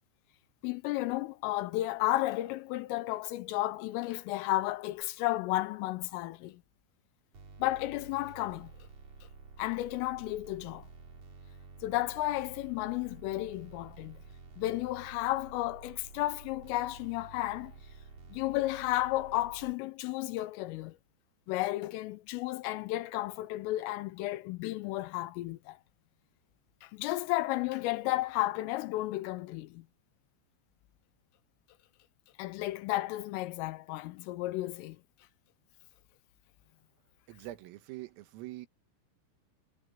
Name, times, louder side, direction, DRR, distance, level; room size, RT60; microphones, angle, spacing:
voice 1, 0.6-6.6 7.6-8.7 9.6-10.9 11.8-14.2 14.6-17.7 18.3-21.0 21.5-25.8 26.8-29.9 32.4-35.0, left 17 dB, 80° left, 3.4 m, -33 dB
sound 1, 7.3-19.7, right 4 dB, 35° right, 3.5 m, -51 dB
voice 2, 37.3-38.7, right 16 dB, 90° right, 4.2 m, -44 dB
omnidirectional pair, 5.9 m